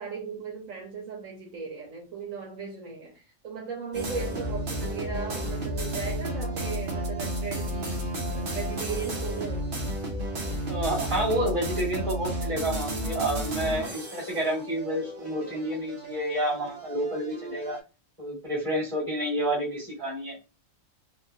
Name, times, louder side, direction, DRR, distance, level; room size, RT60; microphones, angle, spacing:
voice 1, 0.0-9.7, right 5 dB, 75° right, 1.2 m, -37 dB
sound 1, 3.9-17.8, equal, 50° right, 0.8 m, -32 dB
voice 2, 10.7-17.8 18.2-20.4, right 1 dB, 25° right, 1.8 m, -29 dB
4.1 x 2.3 x 2.7 m
omnidirectional pair, 1.4 m